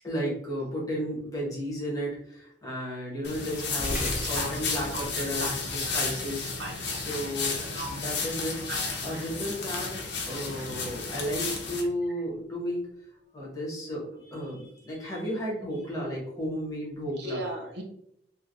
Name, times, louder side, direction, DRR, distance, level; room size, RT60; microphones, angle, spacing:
voice 1, 0.0-6.5 7.0-8.6 9.0-9.9 10.3-12.9 13.3-17.5, equal, 20° left, -5 dB, 1.2 m, -33 dB
sound 1, 3.2-11.8, left 4 dB, 65° left, 0.7 m, -33 dB
sound 2, 3.8-12.4, equal, 5° right, 0.7 m, -42 dB
voice 2, 4.3-6.2 6.6-7.1 7.7-8.0 8.7-9.3 10.6-10.7 17.2-17.8, right 1 dB, 65° right, 2 dB, 0.7 m, -38 dB
3.4 x 2.7 x 2.6 m, 0.74 s
head